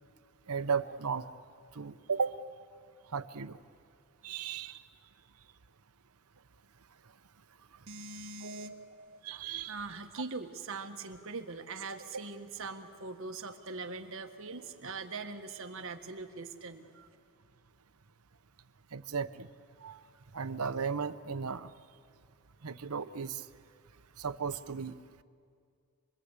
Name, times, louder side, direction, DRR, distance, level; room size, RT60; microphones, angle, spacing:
voice 1, 0.5-1.3 1.7-2.3 3.1-3.6 4.2-4.8 8.4-9.8 18.9-19.5 19.8-20.0 20.3-21.7 22.6-23.4 24.2-25.0, right 6 dB, 85° right, 11 dB, 0.9 m, -35 dB
voice 2, 7.9-8.7 9.5-17.1, right 3 dB, 65° right, 5 dB, 1.6 m, -42 dB
27.5 x 21.5 x 8.3 m, 2.2 s
head